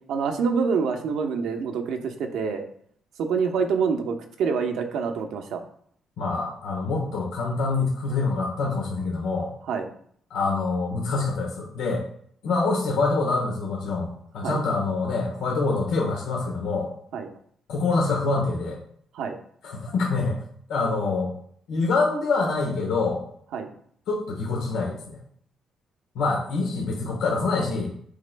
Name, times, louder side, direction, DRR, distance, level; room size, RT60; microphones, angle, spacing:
voice 1, 0.0-2.6 3.2-5.6 9.7-9.9 14.4-14.6 17.1-17.3 19.1-19.4 23.5-23.7, right 5 dB, 80° right, 5 dB, 0.8 m, -26 dB
voice 2, 6.2-9.5 10.3-12.0 12.4-16.9 17.7-18.8 19.6-20.4 20.7-21.3 21.7-23.2 24.1-25.2 26.1-27.9, left 3 dB, 85° left, -2 dB, 1.3 m, -25 dB
8.4 x 4.9 x 2.2 m, 0.64 s
cardioid pair, 90°, 0 cm